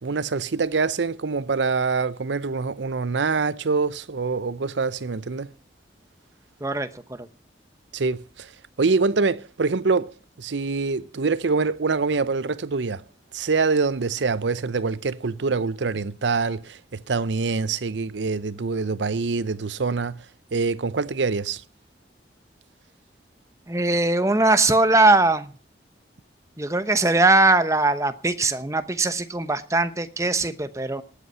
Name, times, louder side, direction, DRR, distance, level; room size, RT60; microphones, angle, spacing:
voice 1, 0.0-5.5 7.9-8.5 8.8-13.0 13.3-20.2 20.5-21.6, right 4 dB, 90° right, 0.7 m, -25 dB
voice 2, 6.6-7.3 23.7-25.5 26.6-31.0, right 2 dB, 15° right, 0.9 m, -21 dB
19.0 x 8.3 x 5.5 m
head